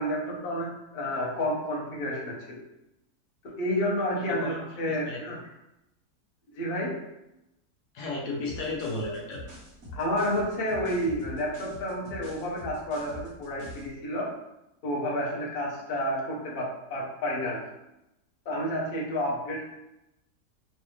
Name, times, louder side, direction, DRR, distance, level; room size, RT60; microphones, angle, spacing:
voice 1, 0.0-2.6 3.4-5.4 6.5-7.0 10.0-14.4 14.8-17.6 18.5-19.6, equal, 45° left, -3 dB, 0.9 m, -30 dB
voice 2, 4.3-5.4 7.9-9.4, left 2 dB, 75° left, -2 dB, 1.4 m, -34 dB
sound 1, 8.5-13.9, left 1 dB, 60° right, 1.5 m, -44 dB
3.3 x 3.2 x 3.1 m, 0.89 s
omnidirectional pair, 1.7 m